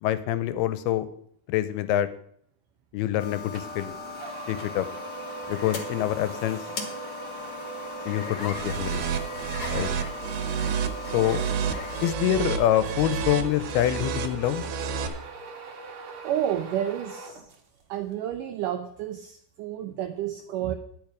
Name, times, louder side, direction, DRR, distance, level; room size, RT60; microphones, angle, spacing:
voice 1, 0.0-1.1 1.5-2.1 2.9-3.9 4.5-4.9 5.5-6.6 8.1-9.0 9.7-9.9 11.1-11.4 12.0-14.6, left 12 dB, 90° left, 13 dB, 2.6 m, -26 dB
sound 1, 3.2-12.1, left 5 dB, 55° left, 1.7 m, -38 dB
sound 2, 3.5-17.8, right 5 dB, 55° right, 1.5 m, -41 dB
sound 3, 8.5-15.1, right 7 dB, 70° right, 2.4 m, -30 dB
voice 2, 16.2-17.5 17.9-20.8, right 11 dB, 90° right, 7 dB, 1.9 m, -30 dB
10.5 x 9.0 x 5.0 m, 0.65 s
omnidirectional pair, 4.5 m